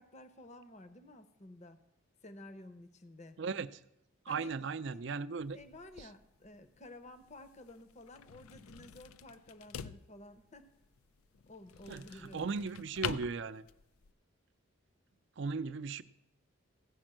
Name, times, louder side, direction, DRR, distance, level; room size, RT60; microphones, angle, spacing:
voice 1, 0.0-1.8 2.2-3.4 4.3-4.6 4.9-5.0 5.5-10.7 11.5-12.6, left 1 dB, 35° left, 0.7 m, -52 dB
voice 2, 3.4-3.7 4.3-5.6 11.9-13.7 15.4-16.0, right 4 dB, 60° right, 0.4 m, -37 dB
sound 1, 5.4-14.1, left 8 dB, 90° left, 0.4 m, -47 dB
15.5 x 5.3 x 7.5 m
head